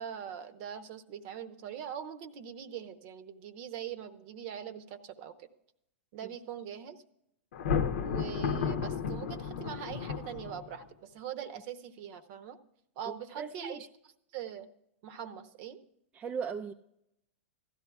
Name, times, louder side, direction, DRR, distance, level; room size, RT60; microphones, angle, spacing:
voice 1, 0.0-5.5 6.1-7.0 8.0-12.6 13.0-13.9 14.3-14.7 15.0-15.8, right 9 dB, 50° right, 11 dB, 0.8 m, -42 dB
Thunder, 7.5-10.9, left 6 dB, 70° left, 0.8 m, -33 dB
voice 2, 13.1-13.9 16.1-16.7, right 6 dB, 20° right, 5 dB, 0.4 m, -38 dB
16.0 x 12.5 x 2.4 m, 0.79 s
hypercardioid pair, 105°, 7 cm